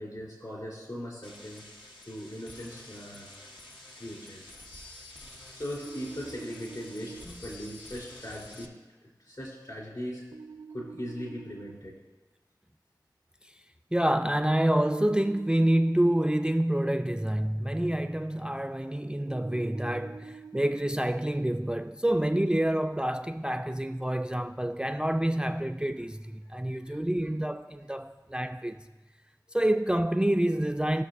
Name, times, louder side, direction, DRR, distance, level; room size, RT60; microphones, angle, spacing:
voice 1, 0.0-1.6 2.0-3.3 4.0-4.5 5.5-8.7 9.2-10.2 10.7-11.9 26.7-27.0, equal, 55° left, 3.5 m, -39 dB
sound 1, 1.2-8.7, left 2 dB, 85° left, 1.0 m, -49 dB
sound 2, 5.9-7.2 10.3-11.7 14.8-16.2 19.3-20.7, right 5 dB, 80° right, 0.5 m, -46 dB
voice 2, 13.9-28.8 29.5-31.0, right 1 dB, 10° right, 0.3 m, -27 dB
19.0 x 6.3 x 2.6 m
wide cardioid pair, 50°, 8 cm